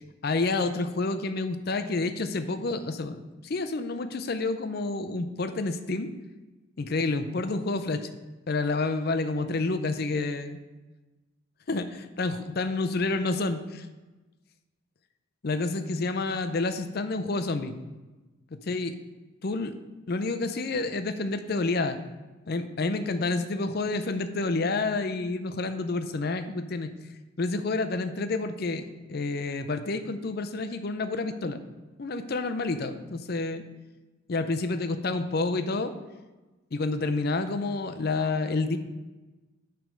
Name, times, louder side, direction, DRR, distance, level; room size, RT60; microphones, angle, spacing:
voice 1, 0.2-6.1 6.8-8.1 8.5-10.6 11.7-13.9 15.4-17.7 18.5-19.0 19.4-19.7 20.1-22.0 22.5-26.9 27.4-28.8 29.1-31.6 32.0-33.6 34.3-35.9 36.7-38.8, left 3 dB, 50° left, 9 dB, 0.5 m, -29 dB
9.0 x 3.5 x 6.3 m, 1.2 s
head